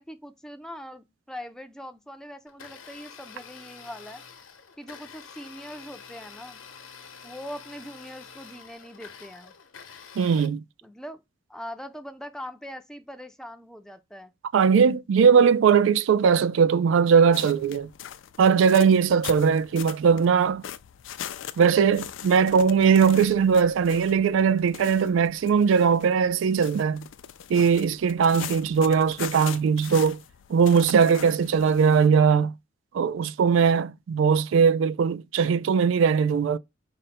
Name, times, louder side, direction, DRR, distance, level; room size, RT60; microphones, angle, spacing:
voice 1, 0.0-4.2 4.8-6.6 7.2-9.5 10.8-11.2 11.5-14.3, equal, 5° left, 0.4 m, -41 dB
Domestic sounds home sounds, 2.5-10.5, left 6 dB, 90° left, 0.9 m, -47 dB
voice 2, 10.2-10.6 14.5-17.9 18.4-20.6 21.6-27.0 27.5-30.2 30.5-32.5 32.9-36.6, right 6 dB, 70° right, 0.3 m, -20 dB
sound 1, 17.3-32.1, left 10 dB, 70° left, 0.4 m, -41 dB
5.0 x 2.1 x 4.2 m
head